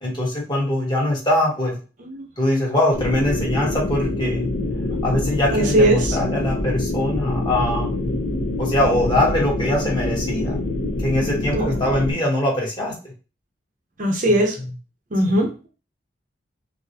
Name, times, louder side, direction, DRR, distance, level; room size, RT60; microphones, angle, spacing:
voice 1, 0.0-1.8 2.4-4.5 5.0-8.0 8.6-10.6 11.0-12.9 15.3-15.4, left 1 dB, 25° left, -3 dB, 1.1 m, -22 dB
sound 1, 2.9-12.1, left 2 dB, 70° left, 0.8 m, -25 dB
voice 2, 5.5-6.2 11.5-11.7 14.0-14.6 15.1-15.7, right 1 dB, 45° right, 2 dB, 0.6 m, -19 dB
3.8 x 2.0 x 2.7 m, 0.34 s
head